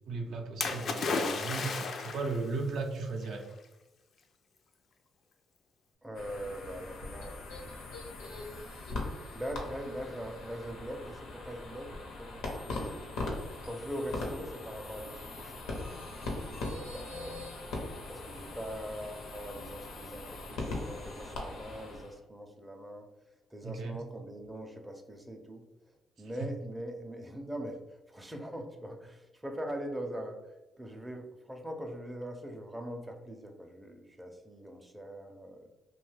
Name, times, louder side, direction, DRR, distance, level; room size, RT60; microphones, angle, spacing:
voice 1, 0.1-1.7 2.0-3.4 23.6-24.0, right 3 dB, 70° right, 3 dB, 0.4 m, -36 dB
Splash splatter, 0.6-2.4 3.3-3.4, left 4 dB, 60° left, 0.3 m, -33 dB
voice 2, 6.0-7.4 9.3-11.9 12.2-13.1 13.6-16.0 16.4-17.4 18.1-23.1 23.5-25.6 26.2-27.8 28.1-30.4 30.8-35.7, equal, 10° right, 3 dB, 0.4 m, -42 dB
sound 1, 6.1-22.2, left 2 dB, 90° left, 0.7 m, -40 dB
2.6 x 2.2 x 3.2 m, 1.0 s
cardioid pair, 90°, 0 cm